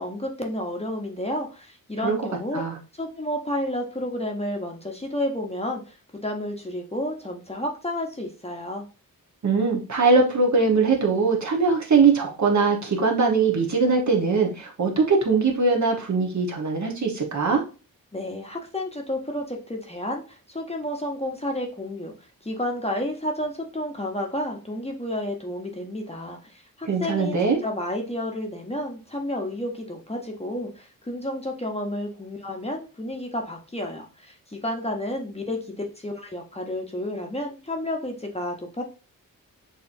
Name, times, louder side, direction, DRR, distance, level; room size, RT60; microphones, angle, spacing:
voice 1, 0.0-2.6 2.9-5.9 6.2-8.8 18.1-22.1 22.4-38.8, left 1 dB, 20° left, 2 dB, 0.8 m, -31 dB
voice 2, 9.4-17.6 26.9-27.6, right 4 dB, 55° right, 1 dB, 1.2 m, -21 dB
6.7 x 2.8 x 2.6 m, 0.35 s
wide cardioid pair, 115°, 35 cm